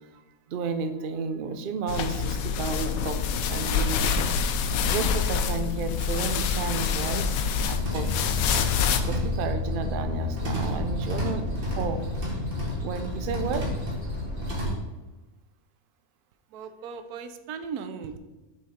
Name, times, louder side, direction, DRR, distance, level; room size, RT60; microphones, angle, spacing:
voice 1, 0.5-3.2 3.5-4.0 4.9-8.7 9.1-12.0 12.8-13.7, right 5 dB, 65° right, 8 dB, 0.5 m, -32 dB
sound 1, 1.9-9.0, left 6 dB, 75° left, 1.0 m, -26 dB
sound 2, 7.6-14.7, left 2 dB, 40° right, 1.7 m, -30 dB
voice 2, 16.5-18.2, right 6 dB, 85° right, 9 dB, 1.1 m, -37 dB
6.5 x 4.3 x 4.9 m, 1.1 s
omnidirectional pair, 1.6 m